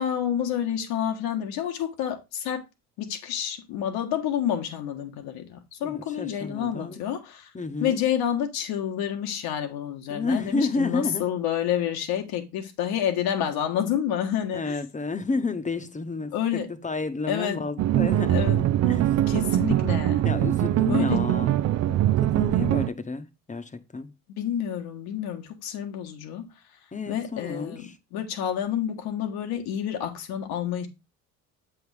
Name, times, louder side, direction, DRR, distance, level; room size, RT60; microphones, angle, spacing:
voice 1, 0.0-2.6 3.0-7.5 7.8-14.8 16.3-16.7 17.3-17.6 18.3-18.7 18.9-20.3 20.9-21.2 24.4-26.5 27.1-30.9, left 9 dB, 70° left, 1.4 m, -29 dB
voice 2, 5.8-7.0 7.5-8.0 10.1-11.2 14.5-16.3 16.7-18.4 18.8-19.3 20.2-24.1 26.9-27.9, left 3 dB, 20° left, 1.0 m, -31 dB
sound 1, 17.8-22.9, right 13 dB, 45° right, 0.4 m, -22 dB
7.9 x 3.6 x 4.8 m
hypercardioid pair, 60°, 39 cm